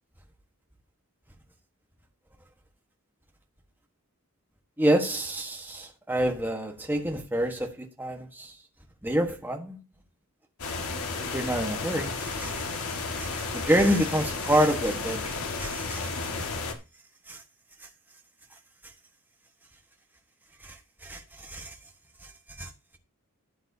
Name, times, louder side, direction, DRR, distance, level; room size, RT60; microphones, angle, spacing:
voice 1, 4.8-8.5 9.0-9.8 11.2-16.5 17.3-17.4 20.6-21.7 22.6-22.7, right 1 dB, 10° right, 1.3 m, -28 dB
sound 1, 10.6-16.7, left 4 dB, 80° left, 1.7 m, -33 dB
12.0 x 9.1 x 2.8 m
head